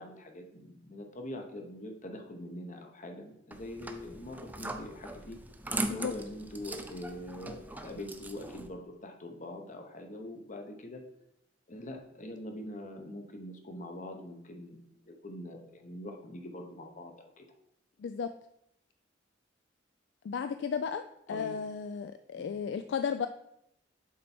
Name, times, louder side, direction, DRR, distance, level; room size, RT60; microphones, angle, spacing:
voice 1, 0.0-5.4 5.9-11.0 11.7-17.4 21.3-21.5 22.3-22.5, left 1 dB, 40° left, 4 dB, 0.9 m, -43 dB
sound 1, 3.5-8.7, right 2 dB, 10° right, 0.5 m, -40 dB
voice 2, 20.2-21.0 21.3-23.3, left 6 dB, 65° left, 9 dB, 0.3 m, -34 dB
7.4 x 4.5 x 4.3 m, 0.78 s
head